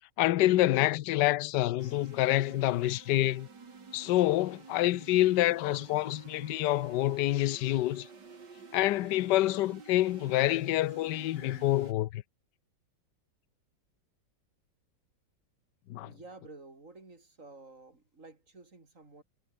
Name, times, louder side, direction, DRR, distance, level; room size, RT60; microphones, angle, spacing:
voice 1, 0.2-3.5 3.9-8.1 8.7-12.2 15.9-16.1, left 15 dB, 70° left, 1.3 m, -27 dB
sound 1, 1.8-11.9, right 5 dB, 65° right, 3.4 m, -51 dB
voice 2, 16.0-19.2, right 3 dB, 45° right, 4.1 m, -51 dB
omnidirectional pair, 2.0 m